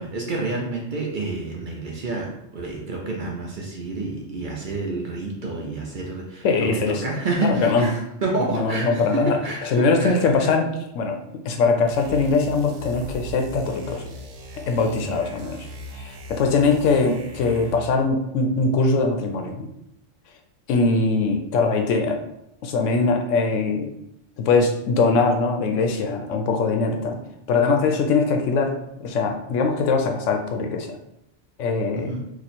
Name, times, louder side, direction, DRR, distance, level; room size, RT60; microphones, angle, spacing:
voice 1, 0.0-10.5 14.9-15.0 31.9-32.2, right 3 dB, 55° right, -1 dB, 0.6 m, -29 dB
voice 2, 6.4-7.0 7.4-7.9 8.4-9.4 9.6-11.2 11.4-14.0 14.7-15.7 15.9-19.7 20.7-22.2 22.6-23.9 24.4-27.2 27.5-30.9 31.6-32.1, left 4 dB, 80° left, 3 dB, 0.9 m, -21 dB
sound 1, 11.9-18.0, left 1 dB, 90° right, 1.0 m, -39 dB
3.0 x 2.4 x 4.1 m, 0.81 s
omnidirectional pair, 1.3 m